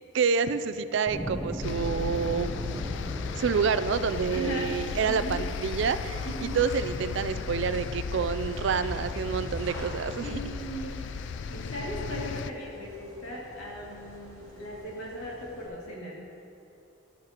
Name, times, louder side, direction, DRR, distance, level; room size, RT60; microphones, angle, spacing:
voice 1, 0.1-2.7 3.4-10.4, right 5 dB, 60° right, 13 dB, 0.3 m, -28 dB
sound 1, 1.1-11.8, right 1 dB, 15° right, 0.8 m, -41 dB
sound 2, 1.6-12.5, left 6 dB, 60° left, 0.3 m, -36 dB
sound 3, 2.5-15.7, equal, 15° left, 2.3 m, -44 dB
voice 2, 4.3-4.7 5.1-5.4 6.2-6.6 10.2-16.2, equal, 80° left, -3 dB, 2.3 m, -38 dB
13.0 x 12.5 x 2.9 m, 2.8 s
head